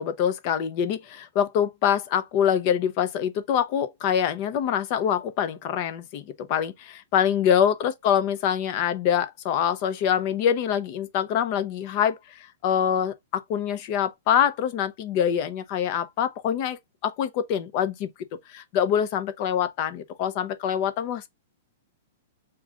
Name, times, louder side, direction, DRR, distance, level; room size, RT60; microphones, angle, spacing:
voice 1, 0.0-12.2 12.6-18.1 18.5-21.3, left 9 dB, 45° left, 0.7 m, -25 dB
6.1 x 2.4 x 3.7 m
hypercardioid pair, 140°, 0 cm